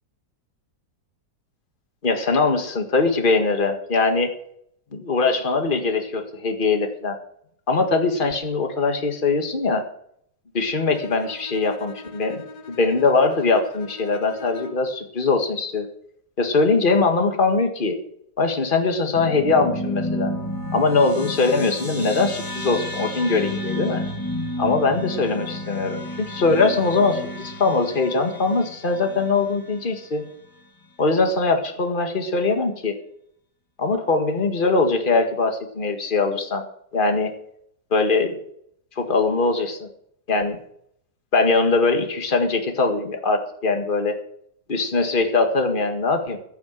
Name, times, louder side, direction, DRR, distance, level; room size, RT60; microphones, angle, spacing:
voice 1, 2.0-4.3 4.9-7.2 7.7-9.8 10.5-12.4 12.7-15.9 16.4-18.0 18.4-20.3 20.7-24.0 24.6-30.2 31.0-32.9 33.8-36.6 36.9-37.3 37.9-38.4 39.0-39.9 40.3-40.6 41.3-44.2 44.7-46.4, left 3 dB, 30° left, 4 dB, 2.0 m, -21 dB
Bowed string instrument, 10.9-15.0, left 3 dB, 75° left, 2.1 m, -41 dB
sound 1, 19.1-29.9, left 1 dB, 15° left, 1.2 m, -31 dB
15.5 x 7.2 x 7.6 m, 0.69 s
omnidirectional pair, 1.9 m